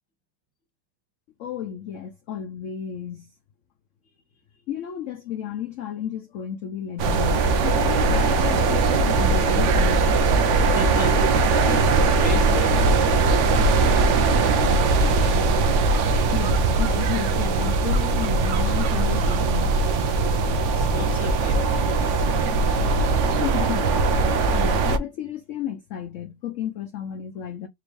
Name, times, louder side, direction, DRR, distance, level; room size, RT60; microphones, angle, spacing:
voice 1, 1.4-3.3 4.7-10.1 16.3-19.8 23.4-23.9 24.5-27.7, left 10 dB, 75° left, 0.7 m, -33 dB
sound 1, 7.0-25.0, right 3 dB, 75° right, 0.6 m, -20 dB
voice 2, 10.6-14.6 20.6-22.8, equal, 5° right, 0.7 m, -36 dB
4.3 x 2.5 x 3.1 m
omnidirectional pair, 1.9 m